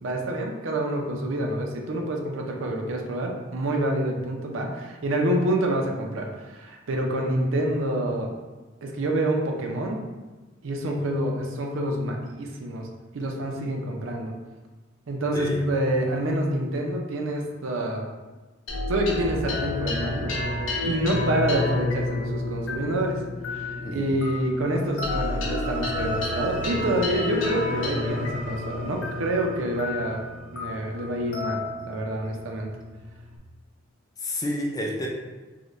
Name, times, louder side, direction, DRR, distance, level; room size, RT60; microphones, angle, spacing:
voice 1, 0.0-8.3 8.8-10.0 10.6-12.9 13.1-14.3 15.1-18.1 18.9-20.3 20.8-23.2 23.5-30.2 30.5-32.7, right 1 dB, 80° right, 1 dB, 0.5 m, -27 dB
sound 1, 18.7-33.4, left 2 dB, 75° left, 0.7 m, -30 dB
voice 2, 23.8-24.2 34.2-35.1, left 1 dB, 20° left, -1 dB, 0.4 m, -30 dB
3.8 x 2.2 x 3.0 m, 1.2 s
head